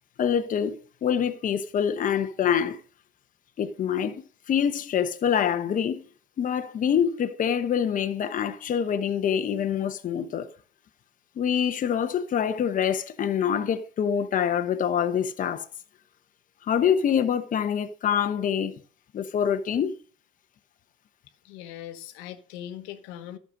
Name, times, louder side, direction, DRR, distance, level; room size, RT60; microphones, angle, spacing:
voice 1, 0.2-2.8 3.6-6.0 6.4-10.5 11.4-15.7 16.7-18.8 19.1-19.9, left 8 dB, 45° left, 1.1 m, -25 dB
voice 2, 21.4-23.4, left 11 dB, 85° left, 1.2 m, -40 dB
12.0 x 6.9 x 5.1 m
supercardioid pair, 100°, 19 cm